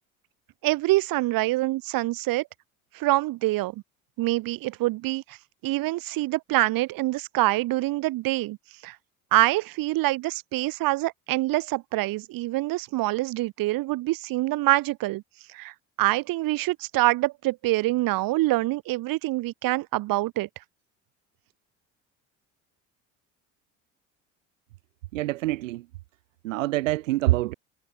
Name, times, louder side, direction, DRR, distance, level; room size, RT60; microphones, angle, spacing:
voice 1, 0.6-2.5 2.9-3.8 4.2-5.2 5.6-8.6 8.8-9.0 9.3-15.2 15.5-20.5, right 18 dB, 60° right, 2.6 m, -25 dB
voice 2, 25.1-25.9 26.4-27.5, right 17 dB, 80° right, 1.4 m, -25 dB
hypercardioid pair, 70°, 38 cm